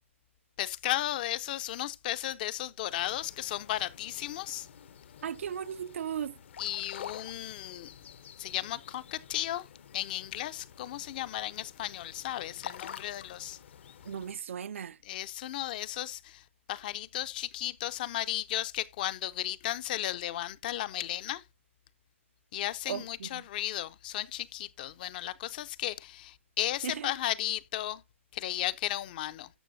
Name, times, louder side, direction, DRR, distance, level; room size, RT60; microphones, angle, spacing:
voice 1, 0.6-4.7 6.6-7.9 8.4-9.7 9.9-13.6 15.0-16.4 16.7-21.4 22.5-28.0 28.3-29.5, left 14 dB, 40° left, 0.5 m, -35 dB
sound 1, 2.9-14.3, left 8 dB, 60° left, 0.8 m, -49 dB
voice 2, 5.2-6.3 14.1-15.0 22.9-23.4 26.8-27.1, right 8 dB, 70° right, 0.4 m, -36 dB
13.0 x 6.1 x 2.6 m
hypercardioid pair, 145°, 7 cm